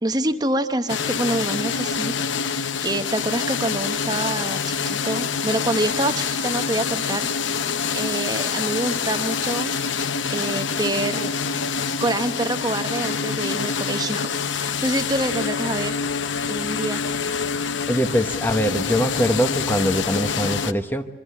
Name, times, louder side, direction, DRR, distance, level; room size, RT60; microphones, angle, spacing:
voice 1, 0.0-2.1 2.8-7.3 7.9-9.7 10.3-11.3 12.0-14.3 14.6-16.0 16.5-17.0, right 1 dB, 20° right, 8 dB, 0.9 m, -26 dB
sound 1, 0.9-20.7, left 6 dB, 85° left, 0.9 m, -26 dB
voice 2, 17.9-21.1, equal, 10° left, 8 dB, 0.9 m, -22 dB
26.0 x 24.0 x 8.3 m, 1.2 s
head